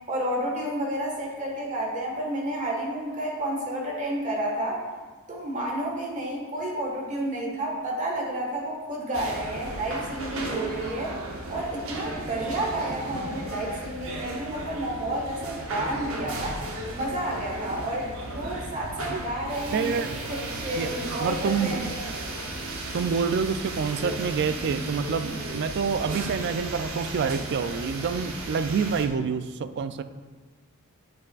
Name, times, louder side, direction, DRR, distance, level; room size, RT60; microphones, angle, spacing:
voice 1, 0.1-4.8 5.3-11.1 11.5-16.6 16.9-21.9, right 1 dB, 35° right, -2 dB, 1.4 m, -31 dB
sound 1, 9.1-29.1, right 2 dB, 65° right, 0.9 m, -35 dB
voice 2, 19.7-20.1 20.8-21.9 22.9-30.0, right 5 dB, 50° right, 11 dB, 0.3 m, -27 dB
9.1 x 5.4 x 2.4 m, 1.4 s
head